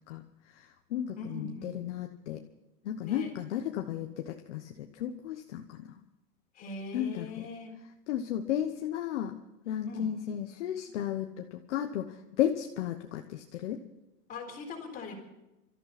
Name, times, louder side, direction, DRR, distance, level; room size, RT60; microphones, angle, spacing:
voice 1, 0.5-2.4 2.8-5.9 6.9-7.5 8.1-9.4 9.7-13.8, left 10 dB, 45° left, 4 dB, 1.1 m, -34 dB
voice 2, 1.2-1.8 3.0-3.3 6.5-7.8 9.9-10.1 14.3-15.1, left 3 dB, 15° left, 0 dB, 3.9 m, -41 dB
24.5 x 14.0 x 4.2 m, 0.95 s
supercardioid pair, 165°, 48 cm